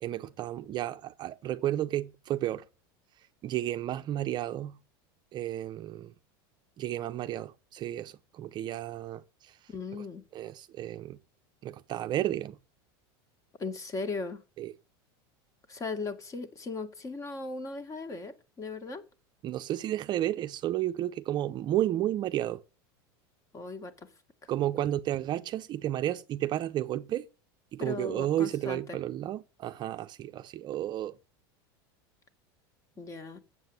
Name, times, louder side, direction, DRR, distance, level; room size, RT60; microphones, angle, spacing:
voice 1, 0.0-2.6 3.4-4.8 5.3-6.1 6.8-9.6 9.9-10.0 10.3-11.2 11.6-12.6 14.6-14.7 19.4-22.6 24.5-27.3 27.7-31.2, right 13 dB, 35° right, 0.6 m, -32 dB
voice 2, 9.7-10.2 13.6-14.4 15.7-19.0 23.5-24.1 24.4-24.5 27.8-29.0 33.0-33.4, left 3 dB, 25° left, 1.9 m, -37 dB
7.8 x 7.6 x 8.0 m
supercardioid pair, 125°, 12 cm